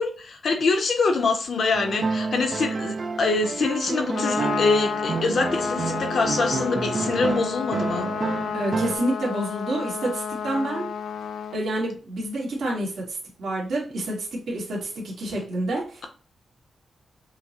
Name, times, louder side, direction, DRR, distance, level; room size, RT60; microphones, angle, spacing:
voice 1, 0.0-8.1, left 3 dB, 55° left, 5 dB, 0.7 m, -24 dB
sound 1, 1.7-9.0, right 4 dB, 35° right, 0.3 m, -29 dB
Trumpet, 4.0-11.6, left 7 dB, 85° left, 0.4 m, -31 dB
voice 2, 8.5-10.9 11.5-16.1, right 1 dB, 75° right, -3 dB, 1.5 m, -28 dB
5.6 x 2.1 x 2.8 m, 0.38 s
wide cardioid pair, 160°, 0 cm